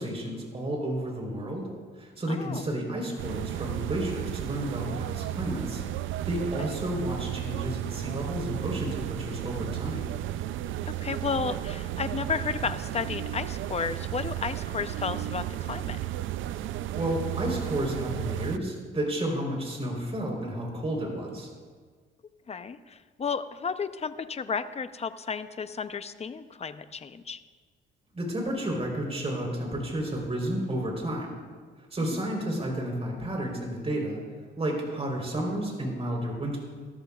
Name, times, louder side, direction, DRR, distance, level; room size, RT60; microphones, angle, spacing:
voice 1, 0.0-1.7 2.0-5.8 6.2-10.1 16.9-21.5 28.1-31.3 31.9-34.2 34.6-36.6, right 1 dB, 30° right, 0 dB, 3.9 m, -31 dB
voice 2, 2.3-2.7 6.6-6.7 10.9-16.0 22.5-27.4 32.1-32.2, left 5 dB, 30° left, 11 dB, 0.7 m, -33 dB
sound 1, 3.2-18.6, right 13 dB, 80° right, 0.5 m, -34 dB
19.5 x 13.5 x 2.4 m, 1.5 s
cardioid pair, 90°, 20 cm